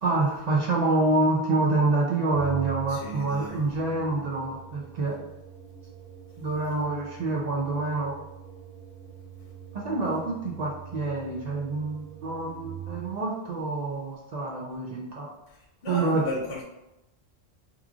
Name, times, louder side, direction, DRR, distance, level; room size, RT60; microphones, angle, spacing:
voice 1, 0.0-5.2 6.4-8.1 9.7-15.3 15.9-16.3, right 2 dB, 65° right, -3 dB, 0.4 m, -27 dB
Organ, 2.2-13.3, right 9 dB, 10° right, 0.8 m, -43 dB
voice 2, 2.9-3.6 15.8-16.6, left 2 dB, 85° left, -3 dB, 1.2 m, -34 dB
3.0 x 2.4 x 2.4 m, 0.92 s
omnidirectional pair, 1.2 m